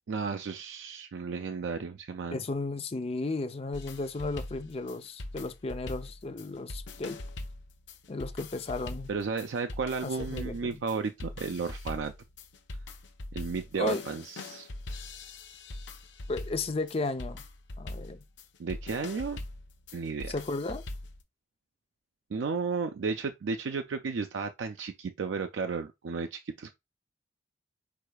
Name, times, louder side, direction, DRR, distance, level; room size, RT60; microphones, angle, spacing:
voice 1, 0.1-2.4 9.1-12.1 13.3-14.7 18.6-19.4 19.9-20.3 22.3-26.7, right 5 dB, 90° right, 0.4 m, -33 dB
voice 2, 2.3-7.2 8.1-9.1 10.0-10.8 13.8-14.0 16.3-17.4 17.8-18.2 20.3-20.8, left 3 dB, 35° left, 0.5 m, -34 dB
sound 1, 3.7-21.2, left 2 dB, 80° left, 0.7 m, -42 dB
4.8 x 4.6 x 2.3 m
head